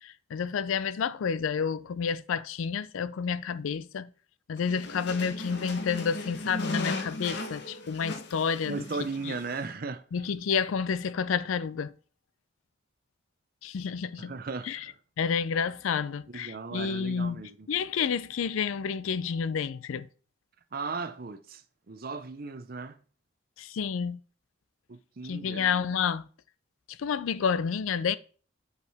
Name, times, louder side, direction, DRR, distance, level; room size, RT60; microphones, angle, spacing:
voice 1, 0.0-4.1 4.5-8.8 9.2-9.4 10.1-11.9 13.6-14.3 14.6-14.9 15.2-17.4 17.7-20.1 23.6-24.2 25.2-26.3 26.9-28.2, left 6 dB, 75° left, 0.4 m, -30 dB
sound 1, 4.6-9.7, left 2 dB, 55° left, 0.9 m, -37 dB
voice 2, 8.7-10.0 14.2-14.9 16.3-17.7 20.7-21.6 21.9-23.0 24.9-25.7, right 4 dB, 45° right, 0.6 m, -36 dB
7.9 x 4.8 x 3.4 m
head